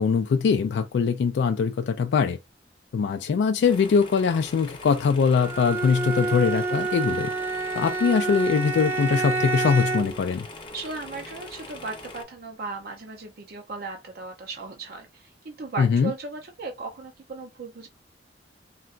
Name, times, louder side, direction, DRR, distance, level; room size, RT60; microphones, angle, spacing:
voice 1, 0.0-2.4 2.9-7.3 7.7-10.5 15.8-16.1, left 6 dB, 75° left, 0.3 m, -22 dB
sound 1, 3.6-12.2, left 2 dB, 30° left, 0.8 m, -42 dB
Bowed string instrument, 5.4-10.2, right 3 dB, 15° right, 0.4 m, -28 dB
voice 2, 10.7-17.9, right 3 dB, 60° right, 0.6 m, -37 dB
3.8 x 2.2 x 2.4 m
head